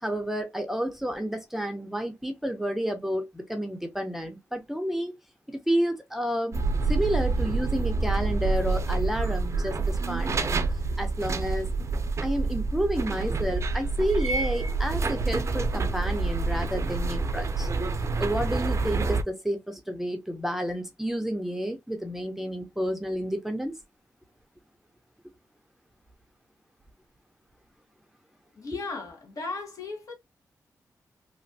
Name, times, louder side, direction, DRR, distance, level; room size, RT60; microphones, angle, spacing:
voice 1, 0.0-5.1 5.5-6.6 6.9-10.6 11.0-11.7 12.2-17.7 18.2-23.8 28.7-28.8, equal, 5° right, 0.6 m, -30 dB
sound 1, 6.5-19.2, right 3 dB, 45° right, 0.5 m, -27 dB
voice 2, 28.5-30.1, left 3 dB, 60° left, 1.4 m, -36 dB
3.1 x 2.5 x 2.7 m
cardioid pair, 90°, 7 cm